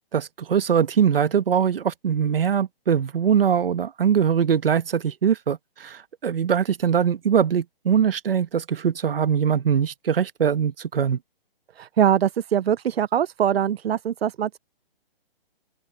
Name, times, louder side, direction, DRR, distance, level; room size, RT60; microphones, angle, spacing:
voice 1, 0.1-11.2, right 8 dB, 70° right, 1.2 m, -22 dB
voice 2, 11.8-14.6, right 9 dB, 90° right, 0.5 m, -22 dB
open air
hypercardioid pair, 165°, 30 cm